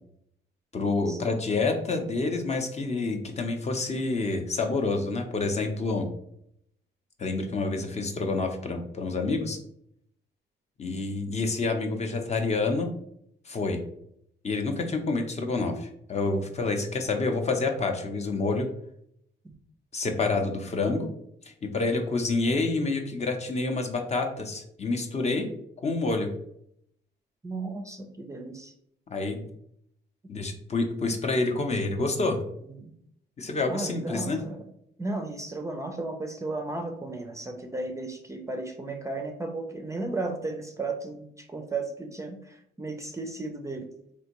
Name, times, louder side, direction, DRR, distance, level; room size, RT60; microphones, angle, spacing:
voice 1, 0.7-6.1 7.2-9.6 10.8-12.9 13.5-13.8 14.4-18.7 19.9-21.1 21.4-25.5 25.8-26.3 29.1-29.4 30.3-32.4 33.4-34.4, left 3 dB, 35° left, 4 dB, 0.5 m, -28 dB
voice 2, 27.4-28.7 32.7-32.9 33.7-34.7 35.0-43.9, right 2 dB, 15° right, 4 dB, 0.4 m, -34 dB
3.4 x 2.6 x 2.9 m, 0.73 s
cardioid pair, 90°, 20 cm